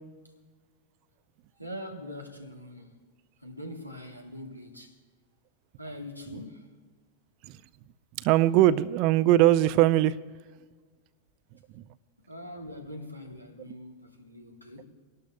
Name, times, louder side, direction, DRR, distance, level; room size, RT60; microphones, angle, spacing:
voice 1, 1.6-3.0 3.4-4.9 5.8-6.7 12.3-14.9, left 1 dB, 90° left, 1.4 m, -42 dB
voice 2, 8.2-10.2 11.7-11.8 13.7-13.8, right 14 dB, 45° right, 0.4 m, -21 dB
27.0 x 12.0 x 2.3 m
figure-of-eight pair, 90°, 0 cm